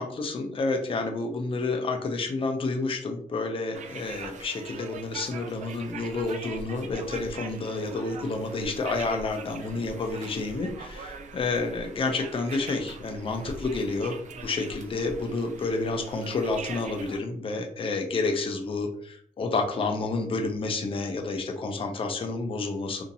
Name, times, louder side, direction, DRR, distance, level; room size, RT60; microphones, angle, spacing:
voice 1, 0.0-23.0, left 3 dB, 40° left, 3 dB, 0.5 m, -30 dB
sound 1, 3.7-17.2, right 4 dB, 60° right, 0.4 m, -42 dB
2.8 x 2.6 x 2.6 m, 0.63 s
cardioid pair, 95°, 14 cm